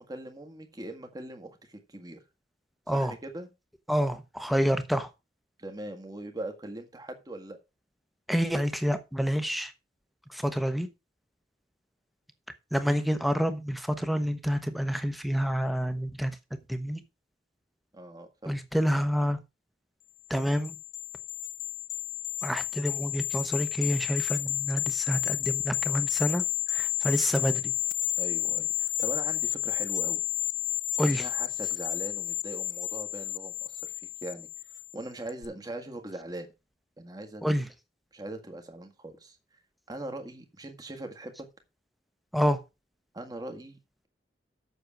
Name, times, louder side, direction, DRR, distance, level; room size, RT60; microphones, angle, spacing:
voice 1, 0.0-2.2 2.9-3.5 5.6-7.6 17.9-18.5 28.2-30.2 31.0-33.9 34.2-34.5 34.9-36.5 37.0-37.4 38.1-39.4 39.9-41.3 43.1-43.8, right 1 dB, 20° right, 1.7 m, -41 dB
voice 2, 3.9-5.1 8.3-9.7 10.3-10.9 12.7-16.4 16.7-17.0 18.4-19.4 20.3-20.8 22.4-26.4 26.7-27.7 31.0-31.3 37.4-37.7 42.3-42.6, equal, ahead, 1.1 m, -28 dB
sound 1, 20.3-34.9 35.3-35.4, left 13 dB, 55° left, 0.4 m, -31 dB
8.1 x 6.6 x 6.2 m
head